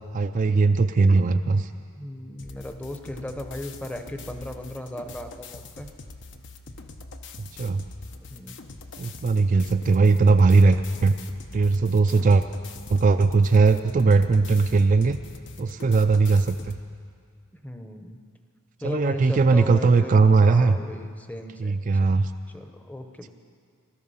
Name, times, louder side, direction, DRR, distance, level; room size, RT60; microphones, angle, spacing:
voice 1, 0.1-1.7 7.6-7.8 9.0-11.1 11.5-12.4 12.9-15.2 15.6-16.8 18.8-20.8 21.6-22.3, right 4 dB, 35° right, 8 dB, 0.4 m, -19 dB
voice 2, 2.0-5.9 8.3-8.6 17.6-18.2 18.8-21.8 22.5-23.3, left 1 dB, 5° left, 6 dB, 0.8 m, -36 dB
sound 1, 2.4-16.8, left 3 dB, 55° left, 0.9 m, -43 dB
19.5 x 13.5 x 5.6 m, 2.1 s
head